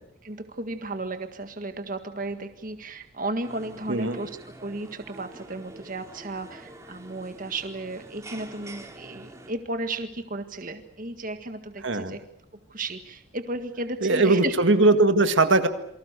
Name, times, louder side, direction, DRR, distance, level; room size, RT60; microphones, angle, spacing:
voice 1, 0.2-12.2 12.7-14.5 14.9-15.0, right 2 dB, 40° right, 7 dB, 1.8 m, -34 dB
sound 1, 3.4-9.5, right 2 dB, 15° right, 3.0 m, -46 dB
voice 2, 11.8-12.2 14.0-15.7, right 2 dB, 65° right, 9 dB, 1.9 m, -20 dB
28.5 x 24.5 x 6.8 m, 0.78 s
head